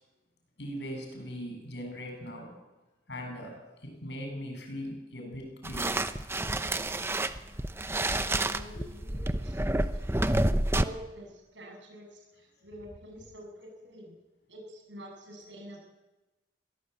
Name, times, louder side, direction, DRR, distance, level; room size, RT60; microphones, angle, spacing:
voice 1, 0.6-2.5 3.1-6.1 8.7-8.9 9.9-10.4, equal, 65° left, 3 dB, 7.7 m, -40 dB
sound 1, 5.6-10.8, right 1 dB, 15° right, 0.8 m, -29 dB
voice 2, 7.7-10.4 10.7-14.2 14.5-15.8, equal, 75° right, 2 dB, 7.9 m, -47 dB
23.0 x 17.5 x 8.3 m, 1.1 s
head